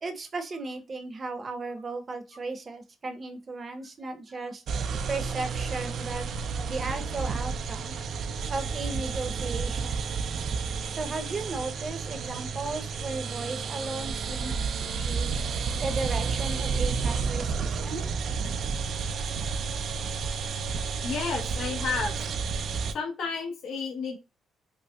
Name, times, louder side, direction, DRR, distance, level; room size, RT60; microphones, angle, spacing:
voice 1, 0.0-4.6 5.1-6.3 6.6-8.0 8.5-10.1 11.0-14.6 15.0-15.4 15.8-18.1, right 3 dB, 35° right, 8 dB, 0.8 m, -35 dB
sound 1, 4.7-22.9, right 5 dB, 65° right, 0.4 m, -31 dB
voice 2, 13.6-14.0 17.8-17.9 21.0-22.1 22.9-24.2, left 4 dB, 70° left, -1 dB, 0.9 m, -32 dB
5.1 x 2.1 x 2.3 m, 0.28 s
cardioid pair, 90°, 0 cm